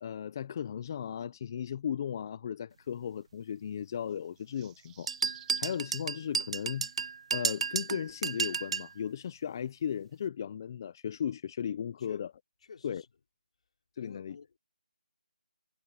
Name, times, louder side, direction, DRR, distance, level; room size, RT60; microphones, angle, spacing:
voice 1, 0.0-5.1 5.6-6.9 7.3-12.3 12.8-13.0 14.0-14.3, left 8 dB, 25° left, 0.6 m, -36 dB
sound 1, 4.1-5.8, right 13 dB, 10° right, 0.9 m, -56 dB
sound 2, 5.1-8.9, right 5 dB, 40° right, 0.4 m, -32 dB
voice 2, 12.6-13.1 14.0-14.6, left 5 dB, 45° left, 5.2 m, -50 dB
figure-of-eight pair, 170°, 5 cm